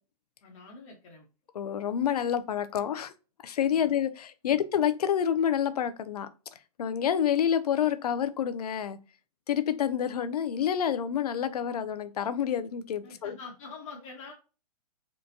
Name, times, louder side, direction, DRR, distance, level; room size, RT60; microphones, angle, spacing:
voice 1, 0.4-1.3 3.7-3.9 4.5-4.6 13.0-14.3, left 4 dB, 55° left, 1.2 m, -45 dB
voice 2, 1.5-3.1 3.4-6.3 6.8-9.0 9.5-13.3, left 9 dB, 75° left, 0.6 m, -28 dB
4.4 x 2.4 x 2.7 m
hypercardioid pair, 135°, 20 cm